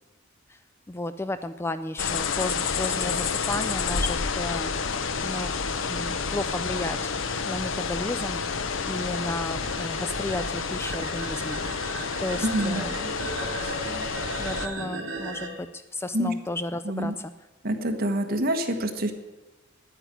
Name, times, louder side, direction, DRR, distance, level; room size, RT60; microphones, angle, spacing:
voice 1, 0.9-4.7 5.2-5.5 5.9-7.1 7.4-11.9 12.2-13.0 13.6-13.7 14.4-17.3, left 2 dB, 10° left, 12 dB, 0.3 m, -33 dB
sound 1, 2.0-14.7, left 5 dB, 70° left, 0.7 m, -29 dB
sound 2, 6.2-15.5, right 3 dB, 75° right, 2.2 m, -38 dB
voice 2, 12.4-12.8 14.3-14.4 16.1-16.3 16.8-17.1 17.6-19.1, right 1 dB, 50° right, 5 dB, 1.4 m, -26 dB
9.7 x 9.1 x 9.1 m, 1.1 s
head